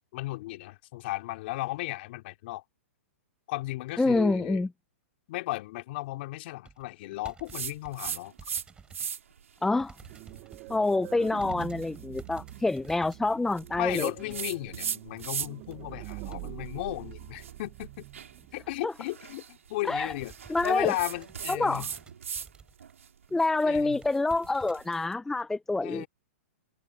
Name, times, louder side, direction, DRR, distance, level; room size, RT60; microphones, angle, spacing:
voice 1, 0.1-2.6 3.5-4.7 5.3-8.3 13.7-18.1 18.5-20.3 20.6-21.9 23.6-24.0 25.8-26.1, left 19 dB, 50° left, 3.3 m, -35 dB
voice 2, 4.0-4.7 9.6-9.9 10.7-14.1 18.8-18.9 19.8-20.2 20.5-20.9 21.5-21.9 23.3-26.0, left 2 dB, 5° left, 0.7 m, -27 dB
sound 1, 6.6-9.1 9.5-10.7 11.3-16.5 16.8-16.9 17.4-17.8 18.2-18.3 18.5-18.7 19.0-19.3 19.7-22.9 23.3-23.4 23.7-24.8 25.4-25.5, right 5 dB, 15° right, 5.6 m, -53 dB
sound 2, 7.5-8.6 8.9-9.4 9.9-15.7 16.0-22.5 22.8-25.0, right 7 dB, 80° right, 4.8 m, -39 dB
sound 3, 10.1-18.9, right 25 dB, 40° right, 1.3 m, -45 dB
hypercardioid pair, 130°, 7 cm